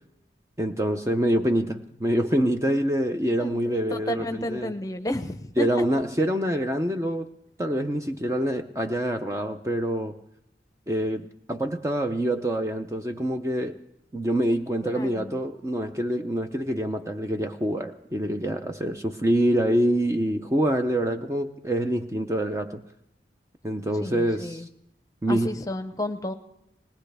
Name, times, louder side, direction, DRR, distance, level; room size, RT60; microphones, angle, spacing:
voice 1, 0.6-4.7 5.6-7.3 7.6-10.2 10.9-13.8 14.1-22.8 23.6-24.7 25.2-25.5, right 1 dB, 15° right, 6 dB, 0.5 m, -26 dB
voice 2, 3.4-5.7 14.8-15.4 24.0-24.7 25.3-26.3, left 1 dB, 20° left, 8 dB, 0.8 m, -32 dB
20.0 x 19.0 x 3.4 m, 0.81 s
head